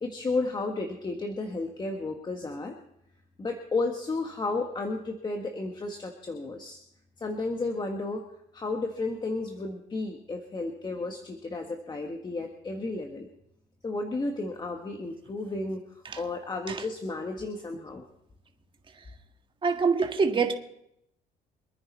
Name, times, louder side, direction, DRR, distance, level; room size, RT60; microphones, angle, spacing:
voice 1, 0.0-2.7 3.4-6.8 7.2-8.2 8.5-13.3 13.8-15.8 16.2-18.0, left 3 dB, 25° left, 3 dB, 1.6 m, -33 dB
voice 2, 19.6-20.5, right 5 dB, 30° right, 4 dB, 1.8 m, -25 dB
26.0 x 9.7 x 4.3 m, 0.77 s
cardioid pair, 110°, 17 cm